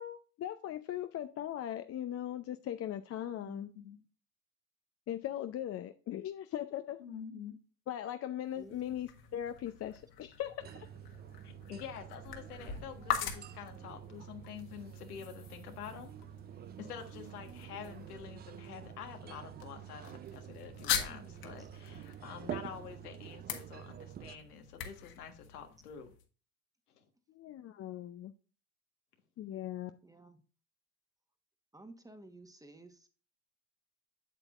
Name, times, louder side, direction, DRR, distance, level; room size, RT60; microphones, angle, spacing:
voice 1, 0.0-3.7 5.1-7.0 7.9-10.9 27.3-28.3 29.4-29.9, left 11 dB, 35° left, 0.6 m, -39 dB
voice 2, 3.3-4.0 7.0-7.6 11.4-16.1 16.8-26.1 26.9-27.0, left 8 dB, 80° left, 1.5 m, -47 dB
sound 1, 8.4-26.2, left 9 dB, 55° left, 1.6 m, -43 dB
sound 2, 10.6-24.4, right 10 dB, 25° right, 0.4 m, -48 dB
sound 3, 18.2-23.7, left 2 dB, 80° right, 2.4 m, -62 dB
voice 3, 30.0-30.4 31.7-33.1, right 2 dB, 10° right, 1.2 m, -54 dB
8.2 x 7.9 x 2.4 m
hypercardioid pair, 75°, 44 cm